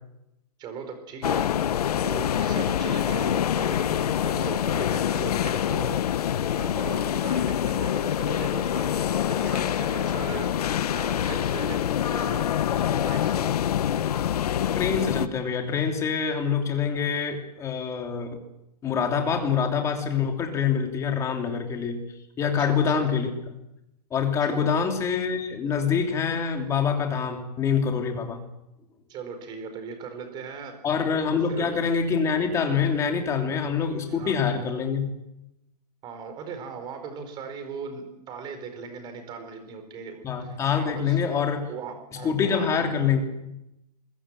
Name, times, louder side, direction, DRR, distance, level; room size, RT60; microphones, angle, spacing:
voice 1, 0.6-1.6 2.0-6.0 6.5-10.5 10.9-11.8 12.1-13.6 22.6-23.1 24.4-24.7 29.1-30.7 31.5-31.7 34.1-34.4 36.0-41.2 41.7-42.8, right 5 dB, 20° right, 7 dB, 4.5 m, -38 dB
sound 1, 1.2-15.3, left 10 dB, 65° left, 1.3 m, -25 dB
voice 2, 14.8-18.3 18.8-22.0 22.4-23.3 24.1-28.4 30.8-35.1 40.2-41.7 42.2-43.2, left 6 dB, 15° left, 3 dB, 3.0 m, -25 dB
24.5 x 22.0 x 7.6 m, 0.88 s
hypercardioid pair, 160°, 21 cm